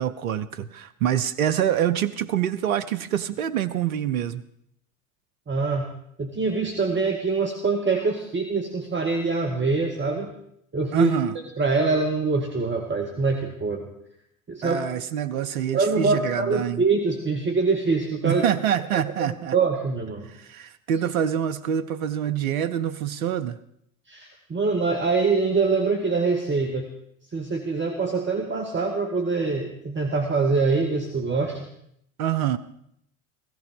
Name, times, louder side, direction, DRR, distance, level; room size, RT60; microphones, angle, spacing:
voice 1, 0.0-4.4 10.9-11.3 14.6-16.8 18.2-19.5 20.2-23.6 32.2-32.6, right 10 dB, 85° right, 12 dB, 0.7 m, -26 dB
voice 2, 5.5-5.9 6.2-10.3 10.7-11.1 11.6-13.9 14.5-14.8 15.7-18.4 19.2-20.3 24.1-26.9 27.3-31.6, right 4 dB, 25° right, 4 dB, 2.1 m, -24 dB
16.5 x 15.0 x 5.3 m, 0.73 s
hypercardioid pair, 70°, 41 cm